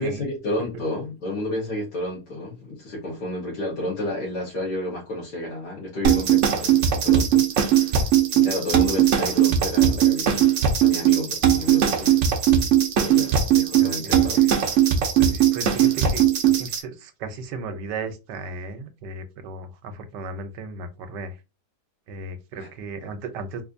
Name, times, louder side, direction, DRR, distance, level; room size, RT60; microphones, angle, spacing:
voice 1, 0.0-7.9 8.3-12.2 12.4-12.6 13.0-14.4 22.6-22.7, left 1 dB, 75° left, 1.8 m, -31 dB
sound 1, 6.0-16.8, right 10 dB, 60° right, 0.8 m, -19 dB
voice 2, 13.8-14.5 15.2-21.4 22.1-23.6, right 3 dB, 85° right, 1.3 m, -35 dB
4.0 x 2.6 x 2.5 m
omnidirectional pair, 1.8 m